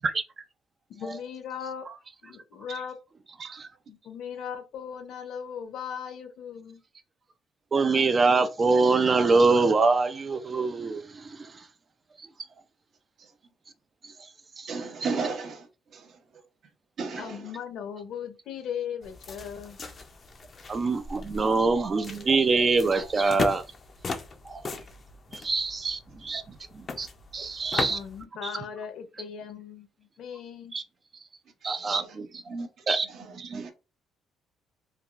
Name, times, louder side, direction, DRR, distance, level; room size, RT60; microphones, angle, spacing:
voice 1, 0.9-1.9 2.2-3.0 3.9-6.8 17.2-19.8 27.7-30.8, left 8 dB, 70° left, 0.7 m, -38 dB
voice 2, 7.7-11.5 14.0-14.1 14.6-14.7 20.7-23.6 24.5-24.6 25.3-26.4 26.7-27.1 27.3-28.0 30.7-30.8 31.6-32.3 32.9-33.1 33.5-33.6, right 3 dB, 30° right, 0.3 m, -24 dB
voice 3, 14.7-15.7 15.9-16.1 17.0-17.5 31.8-32.1 32.5-32.7 33.0-33.7, right 4 dB, 55° right, 0.8 m, -34 dB
sound 1, 19.0-28.2, left 4 dB, 35° left, 0.4 m, -38 dB
3.3 x 2.2 x 2.4 m
cardioid pair, 120°, 0 cm